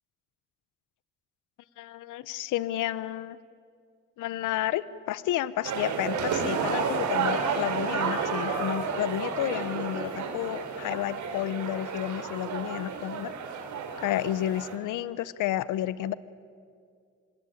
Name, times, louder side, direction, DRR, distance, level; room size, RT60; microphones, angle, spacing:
voice 1, 1.8-3.4 4.2-13.3 14.0-16.1, left 13 dB, 85° left, 18 dB, 0.8 m, -31 dB
sound 1, 5.6-14.8, right 5 dB, 70° right, 3.4 m, -31 dB
25.5 x 21.5 x 8.6 m, 2.2 s
cardioid pair, 90°, 30 cm